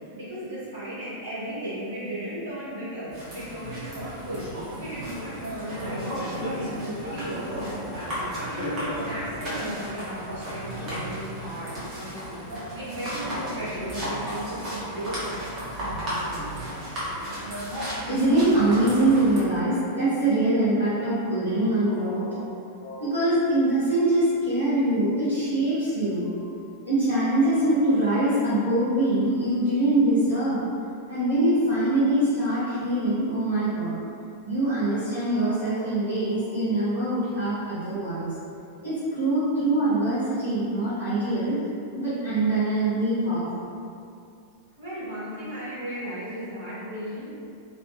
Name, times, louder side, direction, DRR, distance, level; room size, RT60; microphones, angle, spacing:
voice 1, 0.0-4.5 4.7-6.7 7.0-15.3 44.8-47.3, right 1 dB, 60° right, -11 dB, 1.2 m, -36 dB
sound 1, 3.1-19.4, equal, 35° right, 0.9 m, -33 dB
voice 2, 18.1-26.5 26.8-30.6 31.1-34.0 34.4-38.3 38.8-41.7 41.9-43.6, right 1 dB, 80° right, -14 dB, 0.9 m, -23 dB
2.7 x 2.6 x 2.3 m, 2.5 s
figure-of-eight pair, 90°, 0 cm